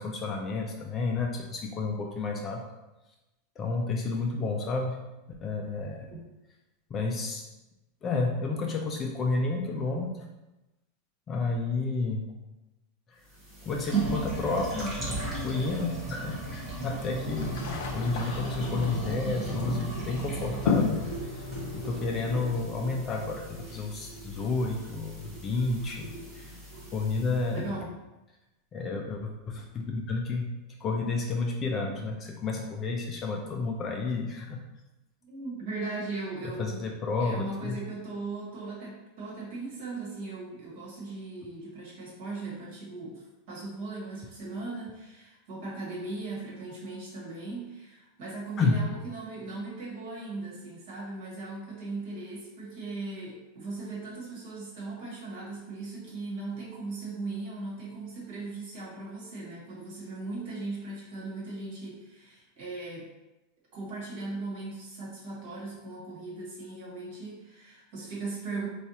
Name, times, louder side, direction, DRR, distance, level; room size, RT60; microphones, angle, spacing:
voice 1, 0.0-2.6 3.6-5.0 5.4-6.1 6.9-7.4 8.0-10.2 11.3-12.3 13.1-13.2 13.6-15.0 15.4-21.0 21.3-21.4 21.7-26.5 26.9-27.7 28.7-30.5 30.8-34.6 36.6-37.8 48.6-48.8, left 3 dB, 20° left, 1 dB, 0.3 m, -31 dB
sound 1, 13.3-27.6, right 2 dB, 20° right, 0.9 m, -36 dB
sound 2, 17.2-22.4, left 5 dB, 70° left, 0.5 m, -33 dB
voice 2, 27.5-27.9 35.2-36.9 37.2-63.1 63.7-68.7, right 3 dB, 50° right, -5 dB, 1.3 m, -38 dB
4.3 x 2.3 x 2.7 m, 1.0 s
supercardioid pair, 170°, 0 cm